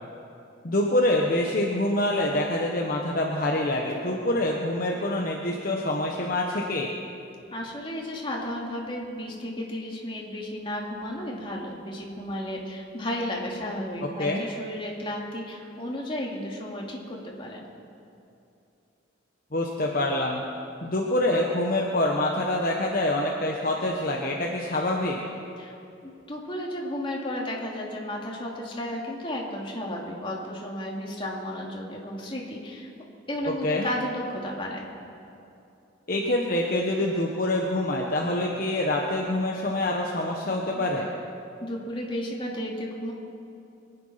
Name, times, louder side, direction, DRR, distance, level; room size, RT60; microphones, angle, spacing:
voice 1, 0.6-6.9 14.2-14.4 19.5-20.4 20.8-25.2 33.6-33.9 36.1-41.1, left 1 dB, 50° left, -1 dB, 1.1 m, -26 dB
voice 2, 7.5-17.6 25.6-25.7 26.0-32.9 33.3-34.9 41.6-43.1, left 1 dB, 30° left, -2 dB, 2.4 m, -33 dB
24.0 x 9.6 x 5.7 m, 2.7 s
head